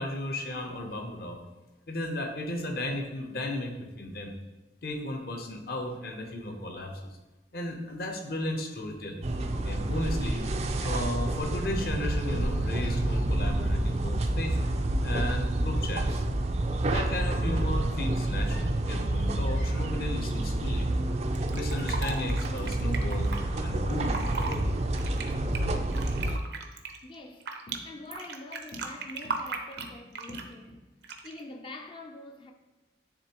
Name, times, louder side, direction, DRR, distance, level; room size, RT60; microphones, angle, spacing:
voice 1, 0.0-1.4 1.9-4.3 4.8-7.1 7.5-9.3 9.6-10.4 10.8-14.6 15.0-16.2 16.9-20.9 21.5-24.7, left 1 dB, 55° left, 0.8 m, -34 dB
sound 1, 9.2-26.4, right 1 dB, 35° right, 0.4 m, -28 dB
Cat, 9.3-10.0 10.3-10.5 10.8-11.8 12.3-12.4 12.7-13.3 14.5-14.9 15.7-15.8 16.0-17.2 17.5-17.7 18.4-18.7 19.2-19.3 19.6-20.1 20.5-22.2 23.0-23.5 23.8-24.4, left 1 dB, 90° left, 1.5 m, -52 dB
Fill (with liquid), 21.4-23.4 24.0-24.6 24.9-27.8 28.1-30.5 31.0-31.4, right 4 dB, 70° right, 0.6 m, -37 dB
voice 2, 27.0-30.9 31.2-32.5, left 2 dB, 30° left, 0.4 m, -45 dB
9.7 x 3.7 x 3.0 m
head